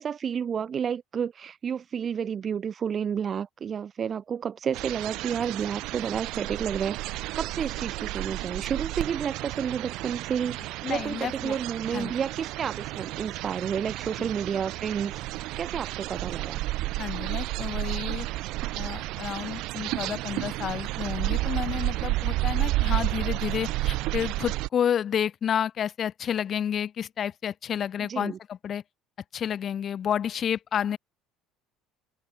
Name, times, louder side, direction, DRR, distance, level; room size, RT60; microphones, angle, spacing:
voice 1, 0.0-16.6 28.0-28.4, right 7 dB, 30° right, 0.4 m, -31 dB
sound 1, 4.7-24.7, right 19 dB, 60° right, 1.3 m, -31 dB
voice 2, 10.8-11.6 11.9-12.1 17.0-18.3 18.7-28.8 29.3-31.0, left 9 dB, 35° left, 1.8 m, -30 dB
cardioid pair, 145°, 0 cm